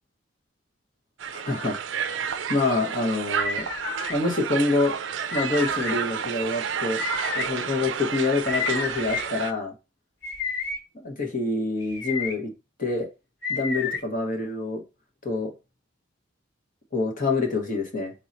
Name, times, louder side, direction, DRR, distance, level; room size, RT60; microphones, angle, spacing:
Crowd, 1.2-9.5, right 7 dB, 65° right, 0.4 m, -31 dB
voice 1, 1.3-1.8 2.5-3.7 4.1-5.0 5.3-7.0 7.3-9.7 11.0-12.5 12.8-13.1 13.5-14.8 15.2-15.5 16.9-18.1, left 3 dB, 45° left, 2 dB, 1.1 m, -26 dB
sound 1, 3.4-4.1 5.3-5.9 7.0-7.5 8.4-9.3 10.2-10.8 11.8-12.3 13.4-14.0, left 4 dB, 75° left, 2.4 m, -30 dB
3.9 x 2.7 x 4.2 m, 0.27 s
head